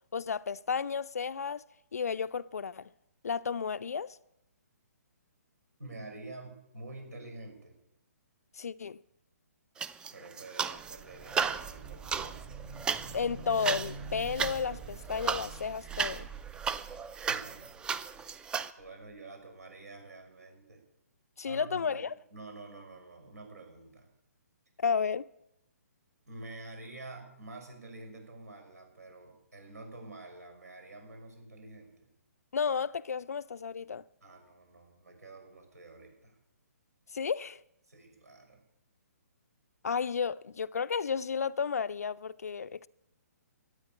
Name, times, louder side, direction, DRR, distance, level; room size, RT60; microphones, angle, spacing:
voice 1, 0.1-1.6 1.9-2.9 3.2-4.2 8.5-9.0 13.1-16.3 21.4-22.1 24.8-25.2 32.5-34.0 37.1-37.6 39.8-42.9, left 6 dB, 70° left, 0.4 m, -32 dB
voice 2, 5.8-7.7 10.1-12.4 17.3-17.8 18.8-20.8 21.4-22.0 22.3-24.1 26.3-32.1 34.2-36.4 37.9-38.6, right 2 dB, 70° right, 6.1 m, -48 dB
sound 1, 9.8-11.0 11.2-18.7, right 6 dB, 10° right, 0.4 m, -35 dB
sound 2, 10.7-18.5 18.8-18.9, right 5 dB, 30° right, 4.2 m, -46 dB
13.0 x 9.1 x 8.5 m
figure-of-eight pair, 135°, 9 cm